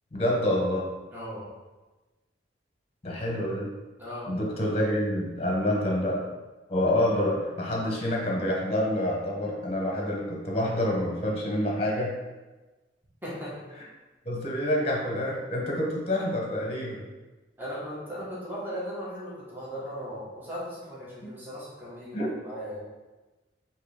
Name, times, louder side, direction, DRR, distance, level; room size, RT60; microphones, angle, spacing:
voice 1, 0.1-0.9 3.0-3.7 4.3-6.2 6.7-12.2 14.2-17.0 22.1-22.3, left 1 dB, 35° left, -2 dB, 0.9 m, -27 dB
voice 2, 1.1-1.4 4.0-4.3 13.2-13.5 17.6-22.8, equal, 10° right, -8 dB, 1.2 m, -37 dB
3.7 x 2.8 x 4.8 m, 1.2 s
head